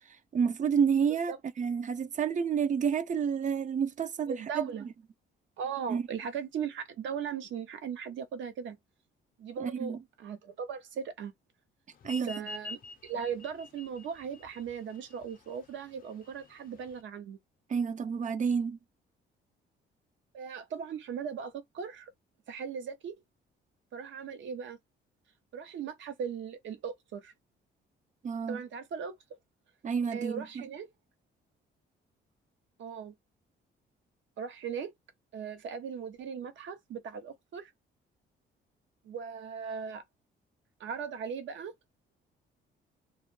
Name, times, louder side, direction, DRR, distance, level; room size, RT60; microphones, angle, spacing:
voice 1, 0.3-4.9 5.9-6.0 9.6-10.0 12.0-12.5 17.7-18.8 28.2-28.6 29.8-30.6, right 6 dB, 40° right, 0.4 m, -30 dB
voice 2, 4.3-4.9 5.6-8.8 9.4-11.3 12.2-17.4 20.3-22.1 22.5-23.2 23.9-24.8 25.5-27.3 28.5-29.2 30.1-30.9 32.8-33.1 34.4-34.9 35.3-37.7 39.0-40.0 40.8-41.7, right 7 dB, 70° right, 0.8 m, -38 dB
sound 1, 12.0-17.0, left 3 dB, 45° left, 0.5 m, -47 dB
2.3 x 2.1 x 3.0 m
cardioid pair, 90°, 20 cm